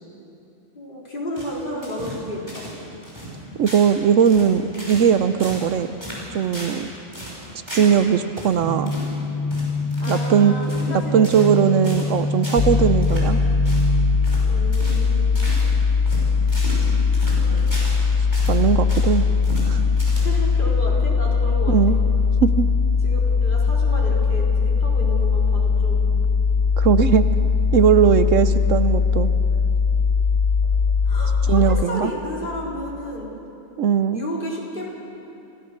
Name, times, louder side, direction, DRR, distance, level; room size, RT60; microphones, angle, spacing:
voice 1, 0.7-2.7 10.0-11.7 14.4-15.5 17.2-17.6 20.2-22.0 23.0-26.1 31.1-33.4 34.1-34.9, equal, 40° left, -4 dB, 4.0 m, -32 dB
sound 1, 1.4-2.8 3.0-3.4 3.7-3.9 4.2-5.1 5.4-5.7 6.0-6.8 7.1-8.0 8.4-8.5 8.9-9.1 9.5-10.3 10.6-10.9 11.2-11.6 11.8-12.1 12.4-12.7 13.0-13.3 13.6-13.9 14.2-14.5 14.7-15.0 15.3-15.7 16.0-18.0 18.3-19.1 19.4-19.7 20.0-20.5, right 1 dB, 20° right, 5.3 m, -35 dB
voice 2, 3.6-5.9 6.3-6.9 7.7-8.9 10.1-10.5 10.9-13.4 18.5-19.2 19.6-19.8 21.7-22.0 22.4-22.7 26.8-27.3 27.7-29.3 31.5-32.1 33.8-34.2, right 7 dB, 70° right, 11 dB, 1.0 m, -19 dB
sound 2, 8.6-14.2, equal, ahead, 1.5 m, -26 dB
sound 3, 12.6-31.8, left 5 dB, 55° left, 0.5 m, -20 dB
28.0 x 16.5 x 6.7 m, 2.8 s
omnidirectional pair, 1.4 m